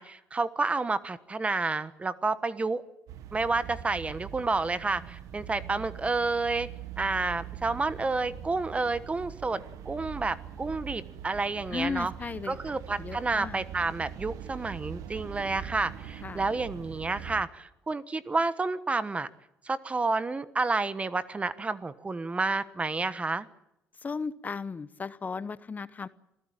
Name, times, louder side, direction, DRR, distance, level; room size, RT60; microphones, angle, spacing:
voice 1, 0.0-2.8 3.3-6.7 7.0-12.1 12.5-19.3 19.6-23.5, right 3 dB, 20° right, 15 dB, 1.3 m, -30 dB
sound 1, 3.1-17.4, right 9 dB, 80° right, 1.3 m, -42 dB
voice 2, 11.7-12.6 13.0-13.6 16.2-16.4 24.0-26.1, left 5 dB, 30° left, 15 dB, 0.9 m, -35 dB
27.0 x 16.0 x 8.9 m, 0.85 s
cardioid pair, 100°, 6 cm